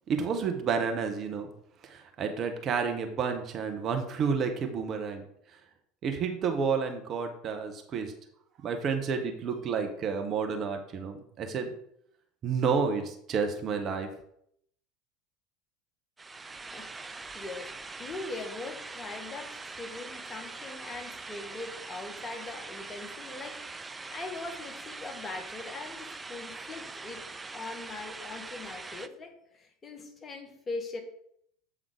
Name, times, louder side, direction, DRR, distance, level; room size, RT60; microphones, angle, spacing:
voice 1, 0.1-1.5 1.8-5.2 6.0-8.1 8.6-11.7 12.4-14.1, right 5 dB, 40° right, 5 dB, 1.0 m, -30 dB
sound 1, 16.2-29.1, right 3 dB, 15° right, 0.4 m, -42 dB
voice 2, 16.7-27.3 27.5-31.0, left 3 dB, 25° left, 4 dB, 1.3 m, -41 dB
7.9 x 3.8 x 4.9 m, 0.70 s
figure-of-eight pair, 70°, 0 cm